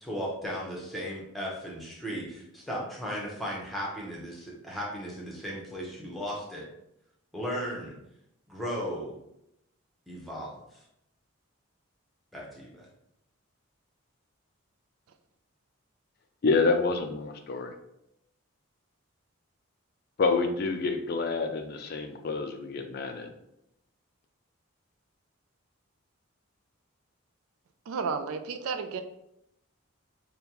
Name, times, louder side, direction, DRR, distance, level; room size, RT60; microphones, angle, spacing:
voice 1, 0.0-6.7 7.3-7.9 8.5-9.1 10.1-10.8 12.3-12.9, equal, ahead, -4 dB, 0.8 m, -36 dB
voice 2, 16.4-17.7 20.2-23.3, left 4 dB, 45° left, 5 dB, 0.3 m, -28 dB
voice 3, 27.9-29.0, right 5 dB, 75° right, 7 dB, 0.4 m, -32 dB
5.2 x 2.2 x 2.9 m, 0.81 s
head